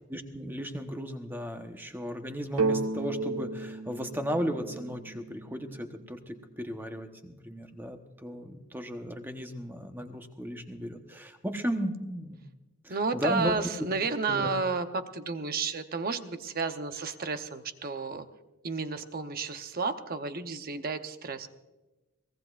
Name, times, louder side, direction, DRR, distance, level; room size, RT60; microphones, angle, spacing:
voice 1, 0.1-12.4 12.8-13.5 14.3-14.5, equal, 10° right, 5 dB, 1.0 m, -35 dB
sound 1, 2.6-6.2, right 3 dB, 85° right, 0.7 m, -33 dB
voice 2, 12.9-18.3 18.6-21.5, right 4 dB, 40° right, 8 dB, 0.8 m, -32 dB
23.0 x 18.0 x 2.5 m, 1.1 s
head